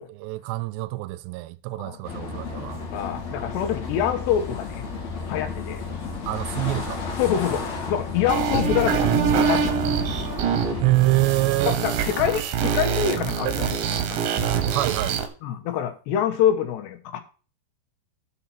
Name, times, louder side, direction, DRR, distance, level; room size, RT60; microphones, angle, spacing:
voice 1, 0.1-2.8 6.3-7.0 10.8-11.8 14.7-15.2, right 19 dB, 80° right, 2.7 m, -25 dB
sound 1, 2.0-10.8, left 4 dB, 45° left, 3.0 m, -32 dB
voice 2, 2.9-4.8 5.3-5.8 7.2-9.8 11.7-14.5 15.4-17.2, left 9 dB, 75° left, 3.2 m, -26 dB
sound 2, 8.3-15.3, right 7 dB, 65° right, 2.6 m, -24 dB
11.5 x 7.1 x 4.5 m
omnidirectional pair, 5.1 m